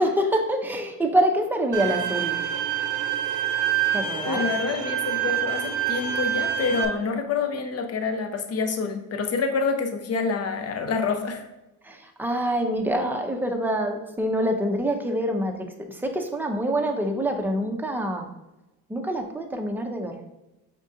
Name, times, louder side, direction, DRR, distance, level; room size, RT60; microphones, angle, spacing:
voice 1, 0.0-2.4 3.9-4.4 11.8-18.3 18.9-20.2, right 1 dB, 5° right, 3 dB, 0.6 m, -26 dB
Bowed string instrument, 1.7-6.9, right 10 dB, 60° right, 0.6 m, -26 dB
voice 2, 4.2-11.4, left 4 dB, 45° left, 6 dB, 0.7 m, -27 dB
5.3 x 3.6 x 2.7 m, 0.98 s
cardioid pair, 115°, 36 cm